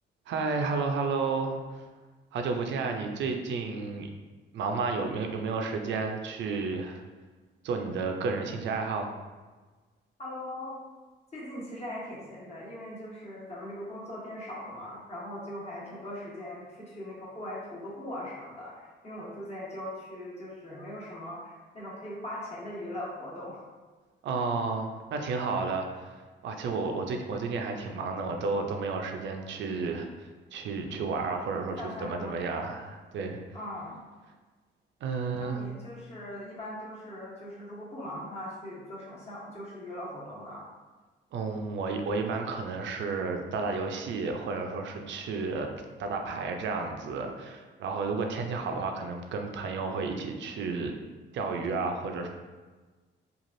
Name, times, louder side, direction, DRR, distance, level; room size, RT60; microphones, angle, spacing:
voice 1, 0.3-1.8 2.3-4.1 4.5-7.0 7.6-9.1 24.2-33.4 35.0-35.6 41.3-45.7 46.0-50.9 51.3-52.3, right 4 dB, 70° right, 4 dB, 0.4 m, -32 dB
voice 2, 10.2-10.7 11.3-23.6 31.8-32.7 33.5-34.0 35.4-40.7, left 1 dB, 35° left, -6 dB, 1.1 m, -40 dB
3.1 x 2.4 x 2.6 m, 1.3 s
cardioid pair, 90°, 20 cm